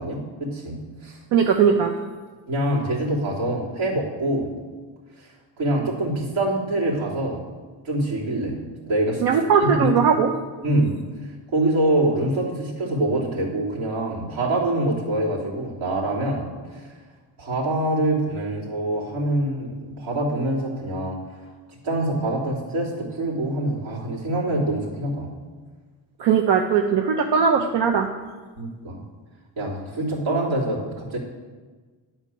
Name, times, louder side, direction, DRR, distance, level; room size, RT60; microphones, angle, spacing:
voice 1, 0.0-1.2 2.5-4.5 5.6-7.4 7.8-8.6 8.8-9.9 10.6-11.0 11.5-16.8 17.4-21.2 21.8-25.3 28.6-29.0 29.6-31.2, right 1 dB, 80° right, -5 dB, 3.2 m, -25 dB
voice 2, 1.3-1.9 9.2-10.3 26.2-28.1, right 7 dB, 65° right, 4 dB, 0.8 m, -19 dB
10.0 x 4.4 x 7.6 m, 1.4 s
cardioid pair, 100°, 44 cm